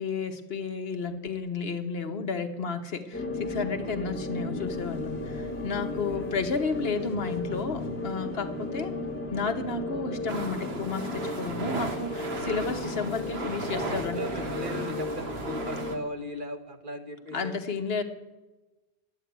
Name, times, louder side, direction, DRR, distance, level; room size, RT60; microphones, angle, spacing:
voice 1, 0.0-9.0 9.3-14.3 17.3-18.0, left 4 dB, 70° left, 8 dB, 1.3 m, -32 dB
sound 1, 3.1-16.0, left 2 dB, 10° left, 1.3 m, -35 dB
sound 2, 4.7-11.2, left 1 dB, 50° left, 1.4 m, -51 dB
voice 2, 5.9-6.2 13.8-17.6, equal, 50° right, 6 dB, 1.4 m, -38 dB
sound 3, 10.3-16.0, right 3 dB, 75° right, 1.7 m, -36 dB
12.0 x 8.8 x 9.3 m, 1.1 s
omnidirectional pair, 1.1 m